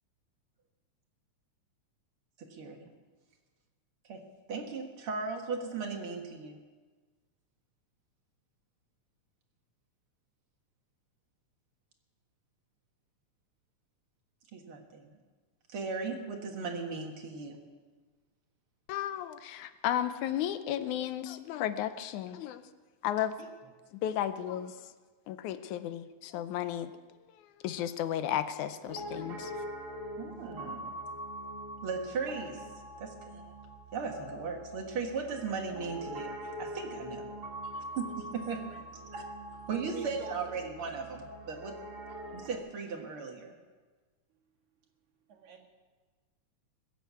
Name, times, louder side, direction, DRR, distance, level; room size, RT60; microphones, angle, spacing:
voice 1, 2.4-2.9 4.1-4.2 4.5-6.6 14.5-15.1 15.7-17.6 30.2-30.9 31.8-32.7 33.0-33.5 33.9-37.3 38.0-38.6 38.9-39.2 39.7-41.8 42.3-43.5, right 4 dB, 50° right, 3 dB, 2.2 m, -37 dB
voice 2, 18.9-22.6 23.0-23.3 23.9-24.8 25.3-26.9 27.6-29.5, left 11 dB, 80° left, 11 dB, 2.1 m, -33 dB
Piano, 28.9-42.6, right 1 dB, 35° right, 2.5 m, -43 dB
voice 3, 37.6-38.0 38.7-38.8 39.5-40.6 45.3-45.7, right 8 dB, 75° right, 1 dB, 3.1 m, -48 dB
21.5 x 8.0 x 8.3 m, 1.4 s
omnidirectional pair, 3.5 m